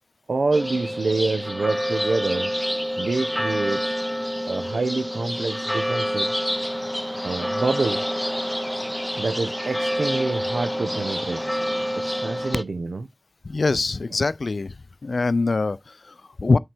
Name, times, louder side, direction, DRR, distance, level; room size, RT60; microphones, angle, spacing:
voice 1, 0.3-2.5 3.0-3.9 4.5-6.3 7.2-8.0 9.2-11.4 12.0-13.1, right 3 dB, 85° right, 0.6 m, -27 dB
sound 1, 0.5-12.6, equal, 5° left, 0.5 m, -27 dB
voice 2, 13.4-14.8 15.0-16.6, left 3 dB, 65° left, 0.3 m, -23 dB
7.7 x 3.3 x 4.4 m
wide cardioid pair, 85°, 0 cm